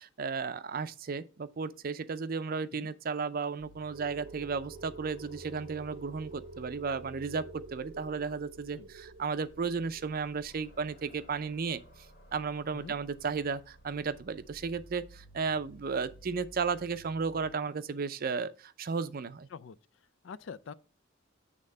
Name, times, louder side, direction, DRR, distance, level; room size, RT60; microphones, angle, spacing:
voice 1, 0.0-11.8 12.3-19.5, right 5 dB, 45° right, 0.5 m, -34 dB
sound 1, 3.6-17.5, equal, 50° left, 2.0 m, -54 dB
sound 2, 3.9-12.2, right 4 dB, 90° right, 0.7 m, -49 dB
voice 2, 19.5-20.7, left 5 dB, 65° left, 0.4 m, -46 dB
8.6 x 3.6 x 5.4 m
head